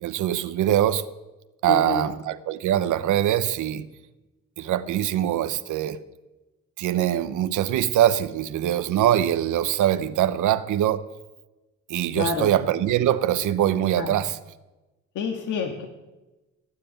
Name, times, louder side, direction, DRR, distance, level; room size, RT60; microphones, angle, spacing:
voice 1, 0.0-1.0 1.6-3.9 4.6-6.0 6.8-11.1 11.9-14.4, right 12 dB, 80° right, 0.9 m, -23 dB
voice 2, 1.7-2.0 12.2-12.5 14.0-14.1 15.2-15.9, left 5 dB, 80° left, 2.0 m, -28 dB
17.5 x 7.6 x 9.0 m
cardioid pair, 90°, 30 cm